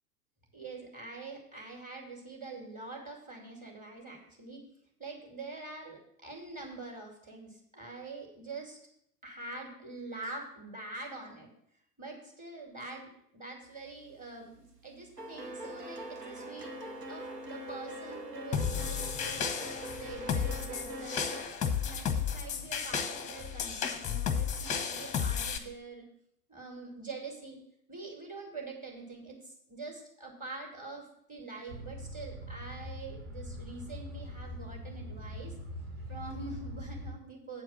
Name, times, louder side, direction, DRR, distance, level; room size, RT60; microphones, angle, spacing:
voice 1, 0.5-4.6 5.0-8.8 9.2-11.5 12.0-16.7 17.1-19.4 20.0-26.0 26.5-27.6 27.9-35.5 36.1-37.6, right 3 dB, 15° right, 0 dB, 2.4 m, -45 dB
sound 1, 13.8-14.2 14.5-21.4, right 1 dB, 85° right, 1.2 m, -43 dB
sound 2, 18.5-25.6, left 7 dB, 15° left, 0.8 m, -33 dB
sound 3, 31.7-37.1, equal, 45° right, 2.7 m, -42 dB
8.4 x 4.6 x 7.1 m, 0.70 s
figure-of-eight pair, 95°, 47 cm